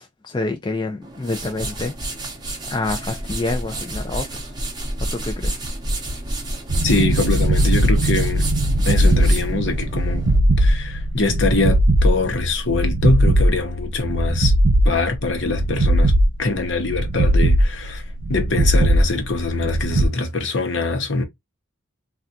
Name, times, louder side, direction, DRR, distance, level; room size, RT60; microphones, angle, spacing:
voice 1, 0.0-1.9 2.7-4.5 5.0-5.6, left 2 dB, 20° left, 0.3 m, -27 dB
sound 1, 1.0-10.4, right 1 dB, 20° right, 0.7 m, -29 dB
sound 2, 6.7-20.1, right 1 dB, 90° right, 0.6 m, -19 dB
voice 2, 6.8-8.5 8.9-10.3 10.6-14.5 14.8-21.2, left 3 dB, 60° left, 0.8 m, -23 dB
3.5 x 2.3 x 2.6 m
head